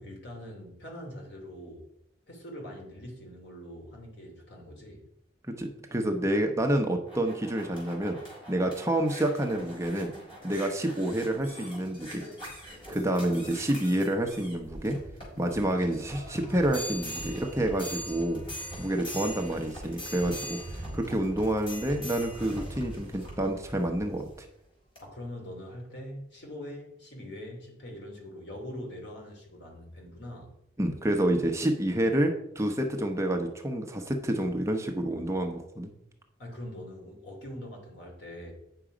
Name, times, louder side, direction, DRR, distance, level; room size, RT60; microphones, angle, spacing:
voice 1, 0.0-1.9 2.3-5.0 13.4-13.7 25.0-30.5 36.4-38.5, left 1 dB, 60° left, 0 dB, 2.7 m, -43 dB
voice 2, 5.5-8.2 8.5-10.1 10.4-12.2 12.9-15.0 15.4-18.4 18.8-24.5 30.8-35.9, right 1 dB, 15° right, 3 dB, 0.8 m, -28 dB
sound 1, 6.8-24.4 25.0-25.1, equal, 25° left, 3.8 m, -42 dB
8.9 x 6.1 x 5.0 m, 0.79 s
head